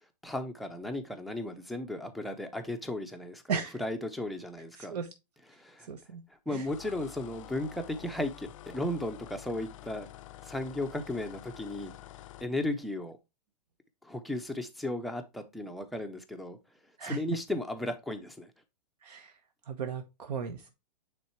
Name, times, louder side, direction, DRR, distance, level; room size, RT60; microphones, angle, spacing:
voice 1, 0.2-3.4 3.8-4.9 5.5-5.9 6.5-10.1 10.4-11.9 12.4-13.2 14.0-16.6 16.8-18.5, left 1 dB, ahead, 0.5 m, -35 dB
voice 2, 3.5-3.8 4.8-5.1 5.8-6.7 17.0-17.2 19.0-20.7, right 6 dB, 70° right, 1.1 m, -37 dB
sound 1, 6.6-12.5, left 14 dB, 50° left, 0.4 m, -48 dB
8.9 x 3.6 x 3.0 m
hypercardioid pair, 150°, 21 cm